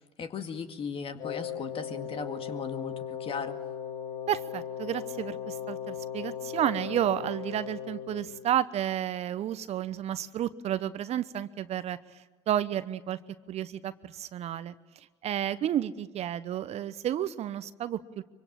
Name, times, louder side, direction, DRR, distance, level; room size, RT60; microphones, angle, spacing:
voice 1, 0.2-3.6, left 5 dB, 40° left, 8 dB, 2.1 m, -37 dB
Wind instrument woodwind instrument, 1.2-8.5, left 8 dB, 60° left, 7.5 m, -38 dB
voice 2, 4.3-13.2 13.5-14.7 15.2-18.2, right 11 dB, 45° right, 14 dB, 1.0 m, -31 dB
24.5 x 24.5 x 7.5 m, 1.2 s
hypercardioid pair, 70°, 15 cm